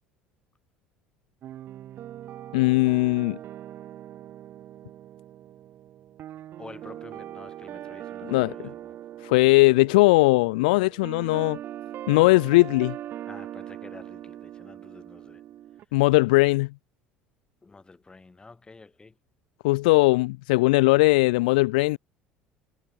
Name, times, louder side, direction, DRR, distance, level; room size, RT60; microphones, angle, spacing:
sound 1, 1.4-15.8, right 12 dB, 50° right, 6.0 m, -41 dB
voice 1, 2.5-3.4 8.2-8.7 9.2-11.6 12.1-12.9 15.9-16.7 19.6-22.0, left 22 dB, 65° left, 0.7 m, -19 dB
voice 2, 6.6-9.0 13.3-15.4 17.6-19.2, left 3 dB, 20° left, 5.7 m, -49 dB
figure-of-eight pair, 60°, 5 cm